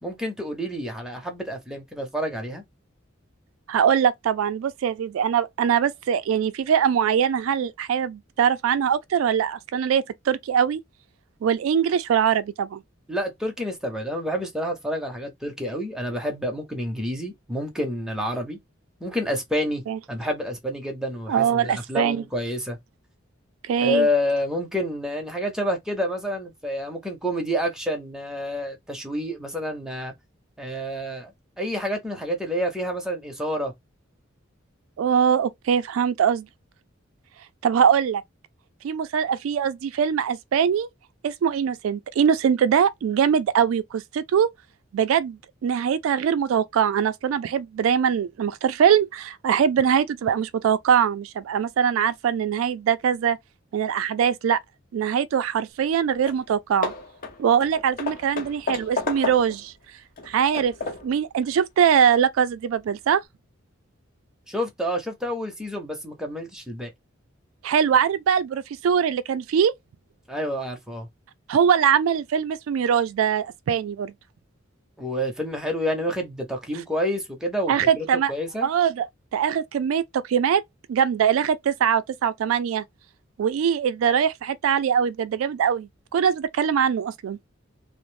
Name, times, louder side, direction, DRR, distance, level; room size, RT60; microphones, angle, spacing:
voice 1, 0.0-2.6 13.1-18.6 19.0-19.8 20.1-22.8 23.8-30.1 30.6-33.7 64.5-66.9 70.3-71.1 75.0-78.7, equal, 5° right, 0.6 m, -28 dB
voice 2, 3.7-10.8 11.4-12.8 19.9-20.0 21.3-22.2 23.6-24.1 35.0-36.5 37.6-38.2 38.8-40.9 41.2-44.5 44.9-53.4 53.7-54.6 54.9-56.9 57.4-59.7 60.3-60.7 61.0-63.2 67.6-69.7 71.5-74.1 77.7-78.3 78.6-79.1 79.3-80.6 80.9-82.8 83.4-87.4, right 8 dB, 80° right, 0.3 m, -22 dB
Hammer / Wood, 55.9-56.0 56.3-56.5 56.8-59.7 60.2-61.2, left 4 dB, 45° left, 0.7 m, -32 dB
2.5 x 2.0 x 3.1 m
head